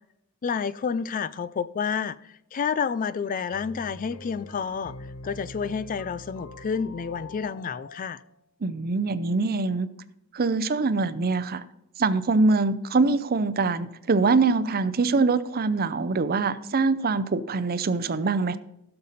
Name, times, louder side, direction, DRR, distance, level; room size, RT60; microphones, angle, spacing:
voice 1, 0.4-5.0 5.2-8.2, left 6 dB, 40° left, 0.4 m, -29 dB
sound 1, 3.5-8.2, left 2 dB, 85° left, 1.1 m, -44 dB
voice 2, 8.6-9.9 10.3-11.6 12.0-18.6, right 3 dB, 45° right, 0.6 m, -24 dB
16.0 x 6.7 x 4.1 m
head